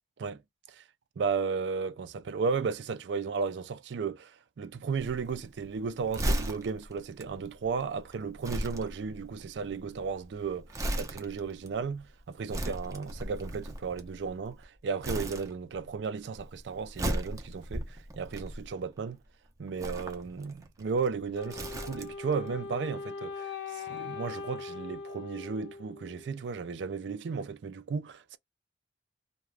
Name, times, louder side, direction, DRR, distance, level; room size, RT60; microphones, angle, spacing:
voice 1, 1.2-19.2 19.6-28.4, right 5 dB, 80° right, 0.4 m, -34 dB
Crumpling crinkling, 5.0-14.6 15.0-16.0 16.2-19.0 19.7-22.3 22.6-22.8, right 1 dB, 20° right, 0.5 m, -36 dB
Wind instrument woodwind instrument, 21.3-26.4, left 5 dB, 75° left, 0.6 m, -41 dB
2.4 x 2.2 x 3.1 m
head